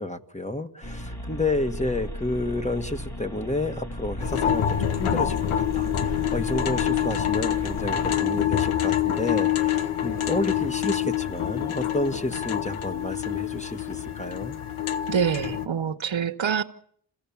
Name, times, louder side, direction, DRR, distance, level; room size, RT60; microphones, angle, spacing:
voice 1, 0.0-14.6, left 2 dB, 15° left, 1.5 m, -30 dB
sound 1, 0.8-8.2, equal, 50° left, 3.8 m, -36 dB
sound 2, 4.2-15.7, left 10 dB, 90° left, 1.0 m, -26 dB
voice 2, 15.1-16.6, right 7 dB, 70° right, 1.1 m, -25 dB
28.0 x 16.0 x 7.2 m
cardioid pair, 50°, 48 cm